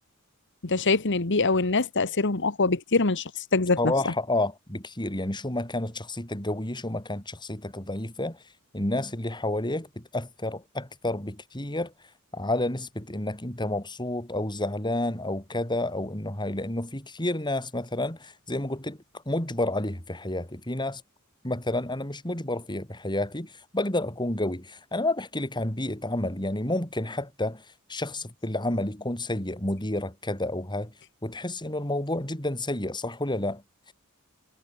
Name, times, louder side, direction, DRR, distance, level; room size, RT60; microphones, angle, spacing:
voice 1, 0.6-4.1, left 3 dB, 60° left, 1.5 m, -24 dB
voice 2, 3.8-8.4 8.7-11.9 12.3-19.0 19.2-21.0 21.4-30.9 31.2-33.9, left 1 dB, 20° left, 5.1 m, -30 dB
head